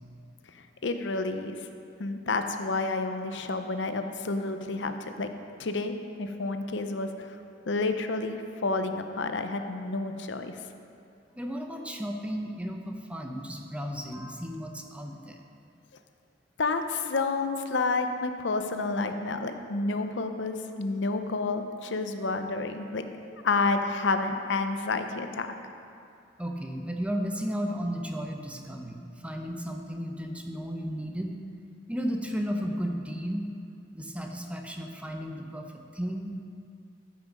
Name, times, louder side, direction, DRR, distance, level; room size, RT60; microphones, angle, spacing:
voice 1, 0.8-1.6 2.0-5.3 5.6-7.4 7.7-10.6 16.6-23.0 23.4-25.5, left 3 dB, 80° left, 7 dB, 0.7 m, -30 dB
voice 2, 11.4-15.4 26.4-31.3 31.9-33.4 33.9-36.3, equal, 5° right, 2 dB, 0.7 m, -34 dB
14.0 x 6.0 x 5.3 m, 2.5 s
head